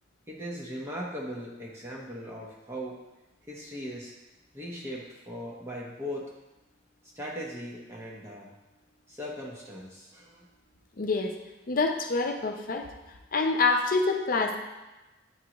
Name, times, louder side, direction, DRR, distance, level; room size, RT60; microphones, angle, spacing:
voice 1, 0.3-3.0 3.5-4.1 4.5-6.3 7.2-8.5 9.1-10.5, equal, 15° right, -4 dB, 0.8 m, -39 dB
voice 2, 11.0-11.3 11.7-12.9 13.3-14.6, left 3 dB, 50° left, 4 dB, 0.6 m, -26 dB
9.0 x 3.7 x 2.9 m, 1.1 s
head